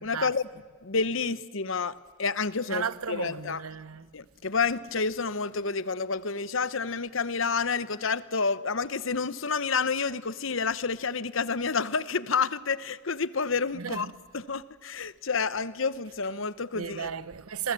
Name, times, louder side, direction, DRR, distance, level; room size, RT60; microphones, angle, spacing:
voice 1, 0.0-0.5 0.8-3.6 4.1-17.1, left 5 dB, 65° left, 1.0 m, -29 dB
voice 2, 2.7-4.1 13.7-14.1 16.7-17.7, right 6 dB, 85° right, 0.9 m, -34 dB
28.5 x 22.5 x 7.6 m
head